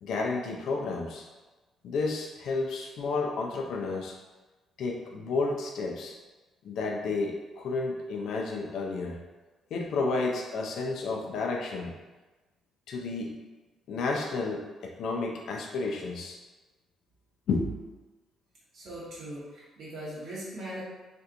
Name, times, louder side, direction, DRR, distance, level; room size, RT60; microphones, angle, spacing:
voice 1, 0.0-1.3 1.8-4.2 4.8-6.1 6.6-9.2 9.7-11.9 12.9-13.4 13.9-16.4 17.5-17.9, left 3 dB, 75° left, 1 dB, 0.5 m, -31 dB
voice 2, 18.7-20.8, right 1 dB, 70° right, -7 dB, 1.4 m, -40 dB
3.3 x 2.8 x 2.5 m, 1.2 s
cardioid pair, 90°, 0 cm